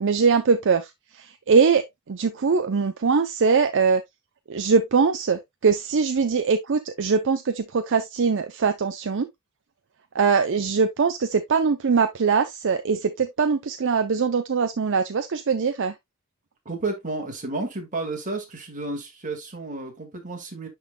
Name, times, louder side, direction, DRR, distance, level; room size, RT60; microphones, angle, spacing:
voice 1, 0.0-4.0 4.5-9.3 10.1-15.9, right 5 dB, 60° right, 0.5 m, -22 dB
voice 2, 16.7-20.7, right 2 dB, 40° right, 1.9 m, -31 dB
11.0 x 3.8 x 2.2 m
head